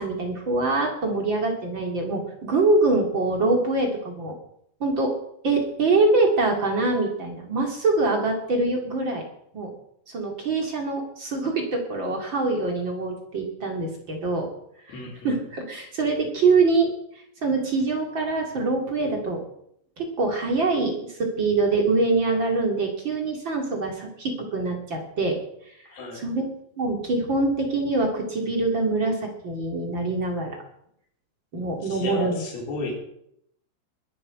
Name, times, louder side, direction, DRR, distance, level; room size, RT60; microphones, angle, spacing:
voice 1, 0.0-4.3 4.8-5.1 5.4-9.2 9.5-9.7 10.1-14.5 14.9-16.9 17.4-19.4 20.0-25.4 26.1-26.5 26.8-30.6 31.5-32.4, right 3 dB, 35° right, 2 dB, 2.2 m, -24 dB
voice 2, 14.9-15.4 25.9-26.2 31.9-32.9, left 3 dB, 55° left, -1 dB, 5.5 m, -33 dB
22.0 x 10.0 x 4.9 m, 0.73 s
omnidirectional pair, 5.2 m